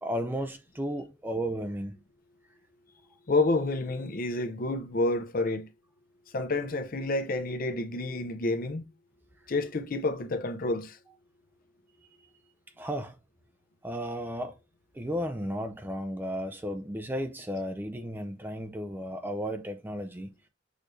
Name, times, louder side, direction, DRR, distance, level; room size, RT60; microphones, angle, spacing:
voice 1, 0.0-1.9 12.8-13.2 13.8-14.6 14.9-20.3, equal, 10° right, 0.4 m, -34 dB
voice 2, 3.3-5.7 6.3-8.9 9.5-11.0, left 2 dB, 40° left, 0.6 m, -29 dB
6.4 x 3.2 x 2.6 m
head